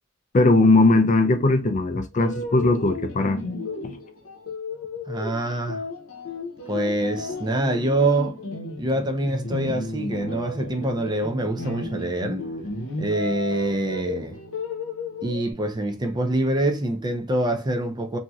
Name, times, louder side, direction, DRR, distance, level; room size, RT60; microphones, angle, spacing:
voice 1, 0.3-3.4 3.8-4.0, left 2 dB, 35° left, 0.4 m, -19 dB
sound 1, 2.1-15.5, left 2 dB, 80° left, 0.8 m, -34 dB
voice 2, 5.1-5.8 6.7-8.4 8.8-12.4 13.0-14.4 15.2-18.2, right 1 dB, 20° right, 0.5 m, -25 dB
2.9 x 2.7 x 2.3 m
head